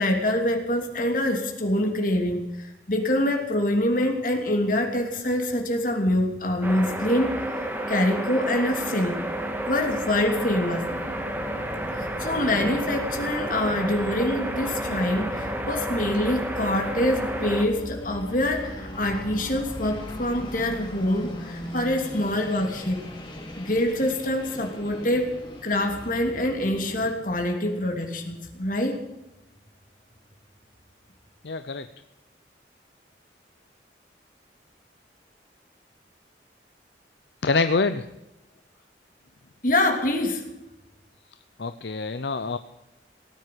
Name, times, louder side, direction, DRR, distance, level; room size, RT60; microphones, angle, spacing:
voice 1, 0.0-7.4 7.9-9.2 9.7-10.9 11.9-23.0 23.6-25.3 25.6-29.0 39.6-40.5, left 1 dB, 45° left, 3 dB, 3.0 m, -25 dB
sound 1, 6.6-17.7, right 1 dB, 10° right, 1.9 m, -31 dB
sound 2, 8.3-27.1, left 1 dB, 25° left, 3.0 m, -40 dB
voice 2, 31.4-31.9 37.4-38.1 41.6-42.6, left 4 dB, 70° left, 10 dB, 0.7 m, -25 dB
18.0 x 9.7 x 7.8 m, 0.95 s
head